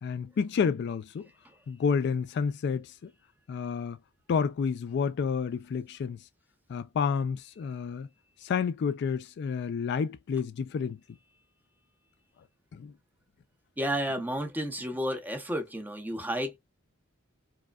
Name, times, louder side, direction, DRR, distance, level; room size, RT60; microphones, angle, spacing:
voice 1, 0.0-1.3 1.7-3.1 3.5-4.0 4.3-6.2 6.7-8.1 8.4-11.0 12.7-12.9, left 6 dB, 55° left, 0.3 m, -30 dB
voice 2, 13.8-16.6, equal, 10° right, 0.8 m, -31 dB
4.7 x 2.2 x 2.3 m
head